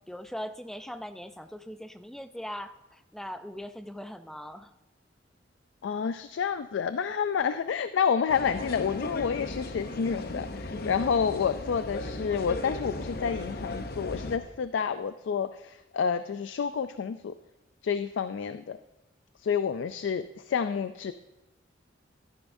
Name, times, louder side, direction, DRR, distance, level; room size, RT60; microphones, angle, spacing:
voice 1, 0.1-4.7, equal, ahead, 10 dB, 0.4 m, -40 dB
voice 2, 5.8-17.3 17.8-18.8 19.4-21.1, left 6 dB, 75° left, 11 dB, 0.3 m, -29 dB
sound 1, 8.3-14.4, left 2 dB, 55° left, 0.7 m, -36 dB
13.0 x 11.0 x 2.6 m, 1.0 s
head